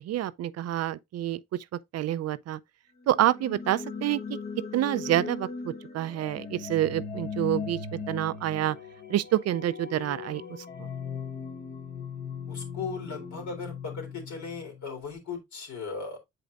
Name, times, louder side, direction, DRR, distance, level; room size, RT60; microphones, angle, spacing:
voice 1, 0.0-1.4 1.9-2.6 3.1-4.2 4.7-7.8 8.1-8.8 9.1-10.4 10.8-10.9, right 13 dB, 55° right, 0.4 m, -27 dB
sound 1, 3.0-14.9, left 5 dB, 35° left, 1.0 m, -38 dB
voice 2, 12.5-16.2, left 5 dB, 70° left, 3.3 m, -37 dB
7.7 x 5.2 x 2.4 m
cardioid pair, 90°, 30 cm